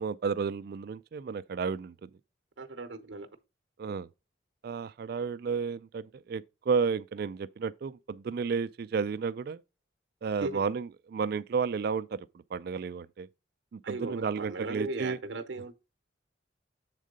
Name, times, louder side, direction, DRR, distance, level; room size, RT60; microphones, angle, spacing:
voice 1, 0.0-2.1 3.8-4.1 4.6-9.6 10.2-13.3 13.7-15.2, right 5 dB, 55° right, 0.3 m, -32 dB
voice 2, 2.6-3.3 10.4-10.6 13.8-15.7, right 2 dB, 75° right, 0.7 m, -37 dB
7.5 x 3.7 x 5.0 m
head